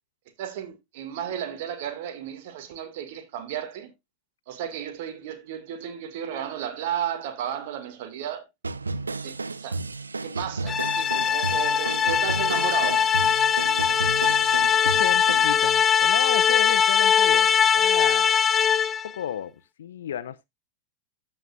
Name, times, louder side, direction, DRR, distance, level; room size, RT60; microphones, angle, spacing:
voice 1, 0.4-3.9 4.5-8.4 9.2-9.8 10.2-13.1, right 9 dB, 50° right, 2.0 m, -33 dB
sound 1, 8.6-15.5, right 3 dB, 75° right, 0.5 m, -33 dB
sound 2, 10.7-19.1, left 7 dB, 20° left, 0.4 m, -21 dB
voice 2, 14.8-18.3 19.0-19.5 19.8-20.5, left 10 dB, 60° left, 0.7 m, -33 dB
15.0 x 5.7 x 2.4 m
figure-of-eight pair, 90°, 0 cm